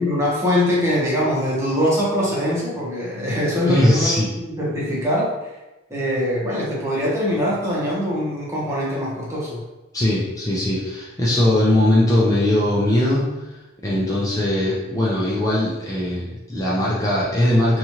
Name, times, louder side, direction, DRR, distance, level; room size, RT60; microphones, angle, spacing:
voice 1, 0.0-5.3 5.9-9.6, equal, 15° right, -6 dB, 0.8 m, -22 dB
voice 2, 3.7-4.3 9.9-13.5 13.8-17.8, left 1 dB, 15° left, -6 dB, 0.4 m, -20 dB
2.9 x 2.4 x 2.8 m, 1.1 s
head